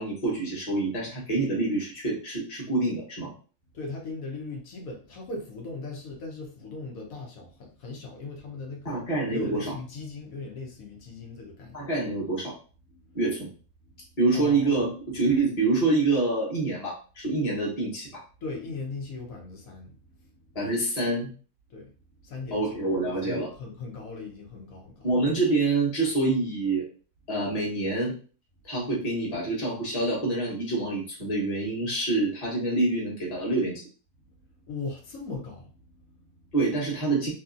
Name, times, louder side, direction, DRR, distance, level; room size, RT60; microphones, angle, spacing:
voice 1, 0.0-3.3 8.8-9.7 11.7-12.5 13.1-13.5 14.2-18.2 20.5-21.3 22.5-23.5 25.0-26.8 27.3-28.1 28.6-33.8 36.5-37.3, right 2 dB, 30° left, -4 dB, 1.1 m, -26 dB
voice 2, 3.7-11.9 12.9-13.2 13.9-14.0 14.3-14.8 18.4-20.5 21.7-21.9 22.2-22.7 23.2-25.1 34.5-36.5, left 3 dB, 90° left, 0 dB, 1.3 m, -39 dB
2.9 x 2.7 x 2.5 m, 0.38 s
omnidirectional pair, 1.4 m